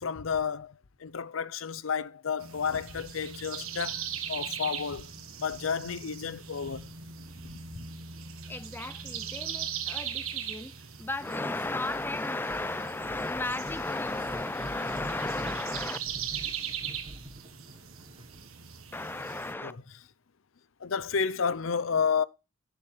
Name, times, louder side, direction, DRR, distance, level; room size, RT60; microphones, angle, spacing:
voice 1, 0.0-5.1 5.4-6.9 7.5-7.9 19.6-19.8 20.8-22.2, left 6 dB, 75° left, 0.6 m, -31 dB
sound 1, 2.4-19.5, right 8 dB, 85° right, 1.5 m, -40 dB
voice 2, 8.5-16.0 18.9-19.7, left 2 dB, 10° left, 0.4 m, -34 dB
sound 2, 11.5-12.2 12.5-18.5, equal, 30° right, 1.2 m, -46 dB
10.5 x 7.0 x 3.2 m
head